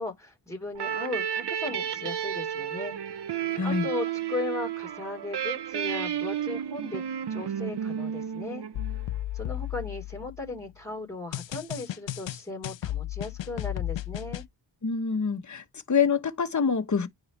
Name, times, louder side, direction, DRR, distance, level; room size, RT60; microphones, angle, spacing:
voice 1, 0.0-8.7 9.3-14.4, left 3 dB, 5° left, 3.9 m, -37 dB
sound 1, 0.7-9.2, right 9 dB, 65° right, 0.8 m, -32 dB
voice 2, 3.6-3.9 14.8-17.1, left 6 dB, 40° left, 1.2 m, -26 dB
sound 2, 8.7-10.6 11.3-14.5, left 13 dB, 75° left, 0.6 m, -34 dB
9.5 x 4.1 x 3.2 m
wide cardioid pair, 85°, 45 cm